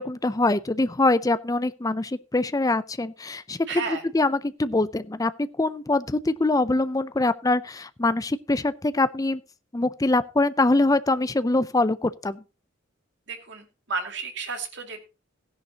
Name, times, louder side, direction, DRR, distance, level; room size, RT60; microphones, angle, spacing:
voice 1, 0.0-9.4 9.7-12.4, left 2 dB, 15° left, 0.5 m, -24 dB
voice 2, 3.7-4.0 13.3-15.1, right 4 dB, 60° right, 2.5 m, -32 dB
16.0 x 10.5 x 2.9 m
head